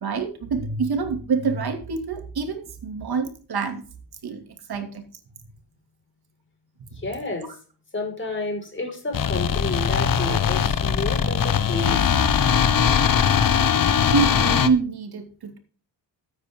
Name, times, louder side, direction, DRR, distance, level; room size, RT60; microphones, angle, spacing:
voice 1, 0.0-3.8 4.2-4.4 4.7-5.0 12.1-12.3 14.1-15.6, right 5 dB, 65° right, 6 dB, 2.7 m, -26 dB
voice 2, 7.0-7.5 7.9-12.0, left 2 dB, 30° left, 3 dB, 5.4 m, -30 dB
sound 1, 9.1-14.7, left 7 dB, 55° left, 1.1 m, -20 dB
13.5 x 9.4 x 3.8 m, 0.38 s
cardioid pair, 85°, 41 cm